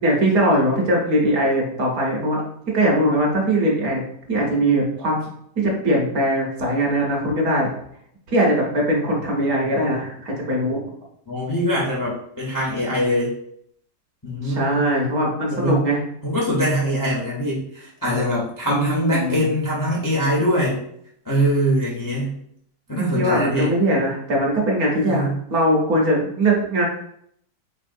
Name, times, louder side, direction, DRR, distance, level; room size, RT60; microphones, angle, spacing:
voice 1, 0.0-2.4 2.7-4.0 4.3-5.2 5.6-7.7 8.3-10.8 14.4-16.0 18.7-19.5 22.9-26.8, right 1 dB, 60° right, -2 dB, 1.4 m, -21 dB
voice 2, 11.3-13.3 14.2-14.8 15.5-15.8 16.2-20.8 21.3-22.4 22.9-23.7 25.0-25.3, equal, 25° left, -5 dB, 0.4 m, -23 dB
4.1 x 3.5 x 2.5 m, 0.70 s
omnidirectional pair, 1.9 m